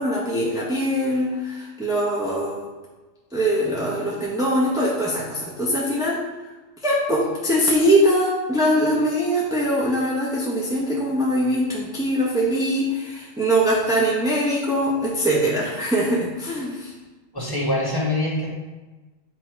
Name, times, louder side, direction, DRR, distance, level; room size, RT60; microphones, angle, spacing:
voice 1, 0.0-2.6 3.3-6.2 6.8-16.9, equal, 5° right, -6 dB, 0.8 m, -22 dB
voice 2, 17.3-18.5, left 1 dB, 15° left, -6 dB, 1.5 m, -24 dB
8.2 x 2.9 x 4.6 m, 1.2 s
omnidirectional pair, 1.3 m